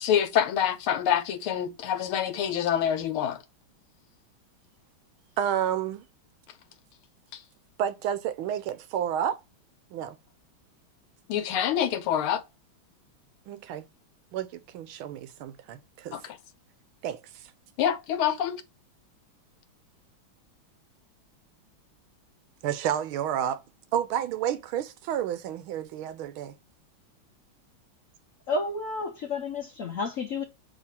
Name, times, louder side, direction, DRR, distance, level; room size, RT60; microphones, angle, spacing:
voice 1, 0.0-3.4 7.3-7.4 11.3-12.4 16.1-16.4 17.8-18.6, left 9 dB, 85° left, 1.7 m, -26 dB
voice 2, 5.4-6.0 7.8-9.4 9.9-10.2 13.5-13.9 14.3-16.2 17.0-17.5 22.6-23.6 23.9-26.5, right 10 dB, 80° right, 1.5 m, -30 dB
voice 3, 28.5-30.4, left 3 dB, 65° left, 0.8 m, -31 dB
6.4 x 2.9 x 5.6 m
omnidirectional pair, 2.3 m